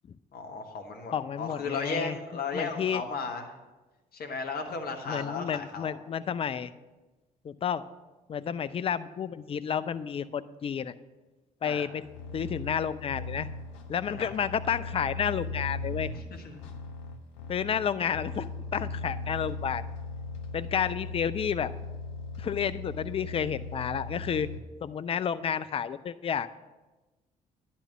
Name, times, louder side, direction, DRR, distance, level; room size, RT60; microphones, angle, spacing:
voice 1, 0.3-3.5 4.1-5.9 11.6-11.9 14.1-14.3 16.1-16.6, left 4 dB, 45° left, 4 dB, 1.3 m, -35 dB
voice 2, 1.1-2.2 2.5-3.0 5.1-6.7 7.4-7.8 8.3-10.9 11.6-12.0 12.3-13.5 13.9-16.1 17.5-19.8 20.5-21.7 22.4-24.5 24.8-26.5, left 7 dB, 25° left, 14 dB, 0.4 m, -31 dB
sound 1, 12.0-24.6, left 3 dB, 70° left, 0.7 m, -38 dB
10.5 x 4.3 x 7.0 m, 1.2 s
figure-of-eight pair, 45°, 21 cm